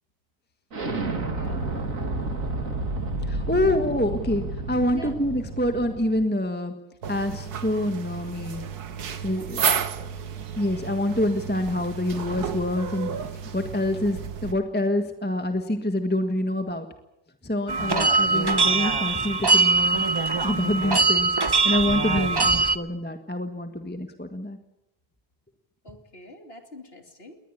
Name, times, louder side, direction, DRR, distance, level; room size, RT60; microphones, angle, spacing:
Explosion, 0.7-6.2, right 2 dB, 55° right, 2.9 m, -30 dB
voice 1, 1.3-1.7 4.9-5.1 9.4-9.9 22.3-22.4 25.8-27.4, equal, 35° left, 5 dB, 2.9 m, -45 dB
voice 2, 3.3-6.7 7.1-8.6 9.2-9.6 10.6-13.1 13.5-16.9 17.4-20.0 20.4-21.3 21.6-24.6, left 1 dB, 5° left, 6 dB, 1.4 m, -26 dB
sound 1, 7.0-14.5, right 7 dB, 70° right, 1.8 m, -32 dB
sound 2, 17.7-22.8, right 4 dB, 25° right, 0.5 m, -22 dB
21.0 x 20.0 x 8.6 m, 0.87 s
omnidirectional pair, 1.7 m